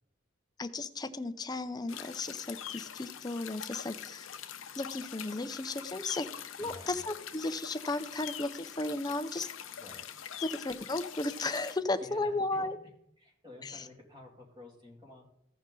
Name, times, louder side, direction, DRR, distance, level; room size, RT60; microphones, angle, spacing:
voice 1, 0.6-4.3 4.8-6.3 6.6-9.5 10.5-12.8 13.6-13.8, left 2 dB, 20° left, 10 dB, 0.5 m, -35 dB
sound 1, 1.9-11.8, left 9 dB, 80° left, 0.7 m, -44 dB
voice 2, 6.6-7.0 9.8-10.1 12.0-12.7 13.2-15.2, left 2 dB, 25° right, -2 dB, 2.5 m, -51 dB
15.5 x 5.3 x 3.8 m, 0.73 s
head